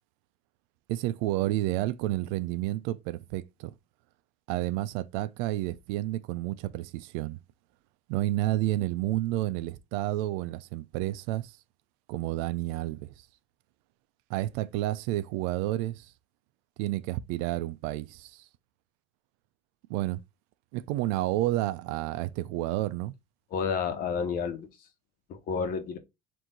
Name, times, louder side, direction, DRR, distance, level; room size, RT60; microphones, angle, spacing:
voice 1, 0.9-3.7 4.5-7.4 8.1-11.5 12.1-13.1 14.3-16.1 16.8-18.4 19.9-20.2 20.7-23.1, right 16 dB, 85° right, 0.5 m, -30 dB
voice 2, 23.5-24.7 25.3-26.0, left 6 dB, 50° left, 1.1 m, -30 dB
4.5 x 2.7 x 3.7 m
cardioid pair, 155°, 19 cm